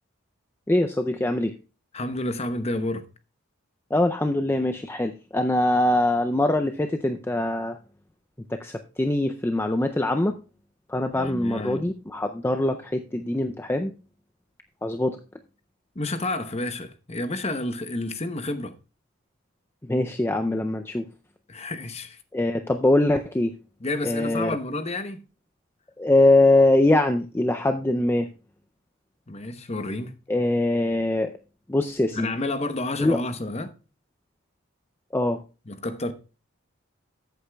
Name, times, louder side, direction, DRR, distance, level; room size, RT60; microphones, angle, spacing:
voice 1, 0.7-1.5 3.9-7.8 8.5-10.4 10.9-13.9 14.8-15.2 19.9-21.1 22.3-23.5 24.0-24.6 26.0-28.3 30.3-31.3 31.7-32.3 33.0-33.2 35.1-35.4, left 1 dB, 10° left, 0.4 m, -23 dB
voice 2, 1.9-3.0 11.2-11.9 15.9-18.7 21.5-22.2 23.8-25.2 29.3-30.1 32.1-33.7 35.7-36.1, left 2 dB, 30° left, 0.8 m, -30 dB
14.0 x 8.2 x 2.3 m
head